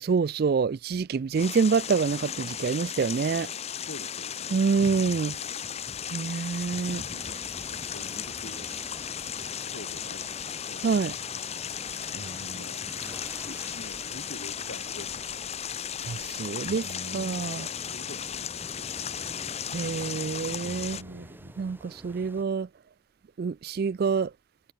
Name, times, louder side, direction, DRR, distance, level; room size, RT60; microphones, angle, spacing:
voice 1, 0.0-3.5 4.5-5.4 6.1-7.0 10.8-11.1 16.0-17.7 19.7-21.0 21.6-22.7 23.4-24.3, right 5 dB, 50° right, 0.3 m, -27 dB
sound 1, 1.3-21.0, left 8 dB, 30° left, 0.8 m, -36 dB
voice 2, 3.9-4.6 6.7-8.7 9.7-10.9 12.6-12.9 13.4-15.5 17.4-18.9, left 1 dB, 60° left, 2.5 m, -47 dB
sound 2, 7.1-22.4, right 1 dB, 10° right, 3.2 m, -48 dB
sound 3, 10.4-10.5 11.0-11.1 12.1-12.7 14.7-14.8 15.1-15.2 16.7-17.5 19.6-19.7 20.6-21.7, right 1 dB, 65° right, 1.5 m, -44 dB
head